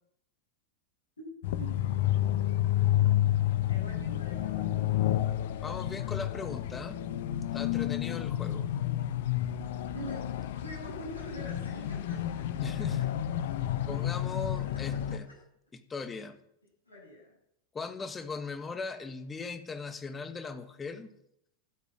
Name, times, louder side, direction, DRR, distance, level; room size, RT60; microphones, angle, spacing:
sound 1, 1.4-15.2, left 12 dB, 55° left, 1.0 m, -30 dB
voice 1, 1.5-1.9 3.7-4.7 9.9-12.5 12.8-13.1 14.7-15.4 16.9-17.3, right 1 dB, 80° left, 7.7 m, -45 dB
voice 2, 5.6-7.0 7.5-8.7 12.6-13.0 13.9-15.3 15.7-16.4 17.7-21.1, left 4 dB, 15° left, 1.4 m, -39 dB
13.0 x 8.3 x 9.9 m
figure-of-eight pair, 90°, 0 cm